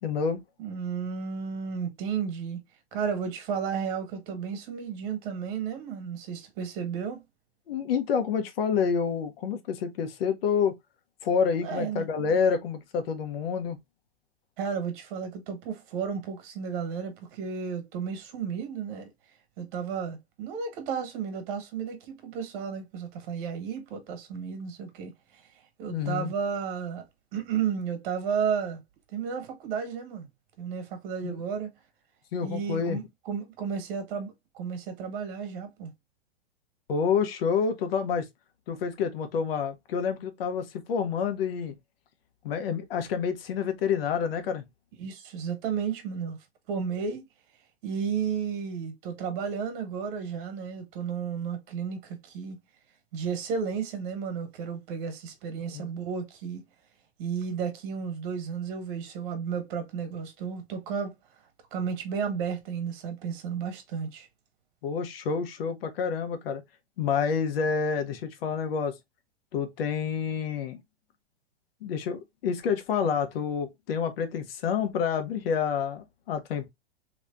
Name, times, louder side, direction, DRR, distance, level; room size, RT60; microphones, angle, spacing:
voice 1, 0.0-0.4 7.7-10.8 11.2-13.8 25.9-26.3 31.2-31.4 32.3-33.0 36.9-38.3 38.7-41.7 42.4-44.6 55.7-55.9 64.8-66.6 67.0-69.0 69.5-70.8 71.8-76.7, left 6 dB, 65° left, 1.1 m, -28 dB
voice 2, 0.6-2.6 2.9-7.2 11.6-12.1 14.6-19.1 19.6-25.5 25.8-27.0 27.3-28.8 29.1-30.3 30.6-31.7 32.4-35.9 45.0-46.4 46.7-47.2 47.8-52.6 53.1-56.6 57.2-61.1 61.7-64.3, right 6 dB, 50° right, 1.6 m, -33 dB
3.3 x 3.2 x 2.6 m
hypercardioid pair, 115°, 32 cm